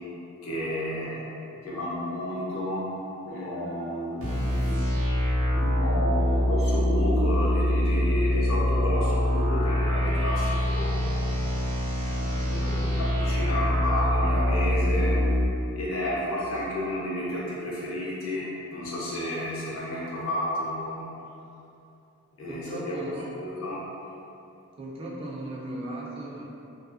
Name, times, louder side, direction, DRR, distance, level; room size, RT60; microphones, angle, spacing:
voice 1, 0.4-1.2 1.6-2.9 3.2-4.9 5.5-11.3 12.0-15.3 15.8-21.1 22.4-23.0 23.3-23.8, left 1 dB, 70° left, -6 dB, 0.6 m, -31 dB
sound 1, 4.2-15.5, left 1 dB, 65° right, 0.6 m, -24 dB
voice 2, 22.5-23.4 24.8-26.4, right 1 dB, 25° right, -5 dB, 0.3 m, -37 dB
2.4 x 2.3 x 2.3 m, 2.7 s
head